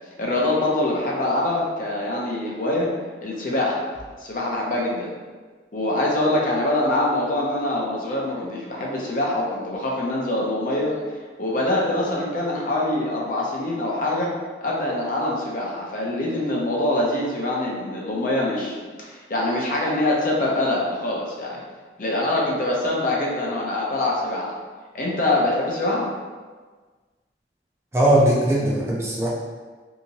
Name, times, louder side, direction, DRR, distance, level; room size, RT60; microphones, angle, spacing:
voice 1, 0.2-2.9 3.2-3.8 4.2-5.1 5.7-10.9 11.4-14.3 14.6-21.6 22.0-24.5 24.9-26.1, left 1 dB, 50° left, -3 dB, 0.6 m, -24 dB
voice 2, 27.9-29.3, right 1 dB, 15° right, -5 dB, 0.4 m, -19 dB
2.8 x 2.7 x 2.8 m, 1.4 s
head